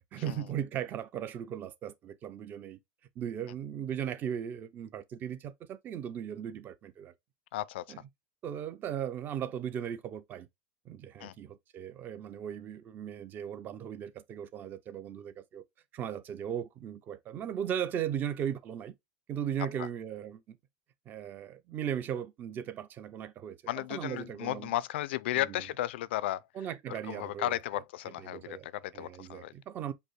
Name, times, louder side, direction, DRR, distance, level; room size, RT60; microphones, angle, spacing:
voice 1, 0.1-2.8 3.2-7.1 7.9-8.0 8.4-10.5 10.9-15.6 15.9-18.9 19.3-20.6 21.1-24.7 25.3-25.6 26.5-27.8 28.2-28.7 28.9-29.9, right 9 dB, 30° right, 0.7 m, -37 dB
voice 2, 7.5-7.9 11.2-11.3 19.8-19.9 23.7-26.4 26.9-29.5, left 15 dB, 75° left, 0.3 m, -34 dB
5.1 x 2.1 x 4.7 m
supercardioid pair, 135°, 6 cm